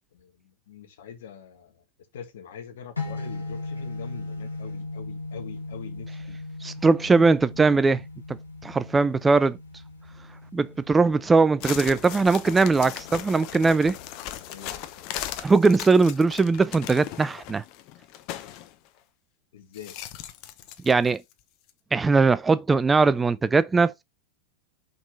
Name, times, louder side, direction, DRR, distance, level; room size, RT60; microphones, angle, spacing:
voice 1, 0.7-1.7 2.1-6.4 14.5-14.7 19.5-19.9, left 7 dB, 60° left, 1.6 m, -43 dB
sound 1, 3.0-15.0, left 2 dB, 80° left, 1.7 m, -39 dB
voice 2, 6.6-8.0 8.6-9.6 10.5-14.0 15.4-17.6 20.8-21.2 21.9-24.0, right 4 dB, 15° right, 0.3 m, -20 dB
sound 2, 11.6-18.7 19.7-21.3 21.7-21.8, left 12 dB, 40° left, 0.8 m, -38 dB
5.4 x 5.3 x 4.0 m
figure-of-eight pair, 90°, 0 cm